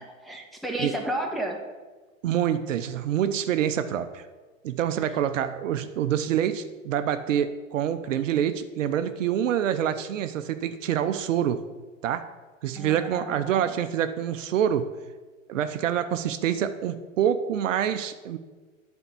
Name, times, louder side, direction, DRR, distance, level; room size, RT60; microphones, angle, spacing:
voice 1, 0.2-1.6 12.7-13.7, right 1 dB, ahead, -1 dB, 1.3 m, -32 dB
voice 2, 2.2-4.3 4.6-11.6 12.0-12.3 12.6-14.9 15.5-18.4, right 9 dB, 70° right, 10 dB, 0.6 m, -26 dB
8.9 x 4.5 x 6.8 m, 1.3 s
hypercardioid pair, 100°, 39 cm